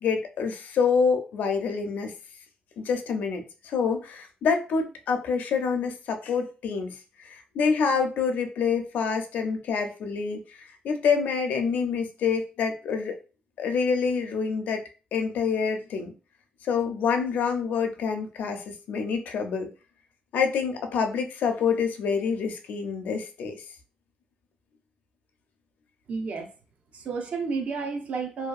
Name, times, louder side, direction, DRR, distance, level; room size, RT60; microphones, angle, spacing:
voice 1, 0.0-2.1 2.8-10.4 10.8-13.2 13.6-14.8 15.1-16.1 16.6-19.7 20.3-23.6, left 5 dB, 75° left, 5 dB, 0.5 m, -27 dB
voice 2, 26.1-26.5 26.9-28.5, right 4 dB, 55° right, 5 dB, 0.5 m, -31 dB
2.7 x 2.2 x 2.3 m, 0.33 s
cardioid pair, 130°, 3 cm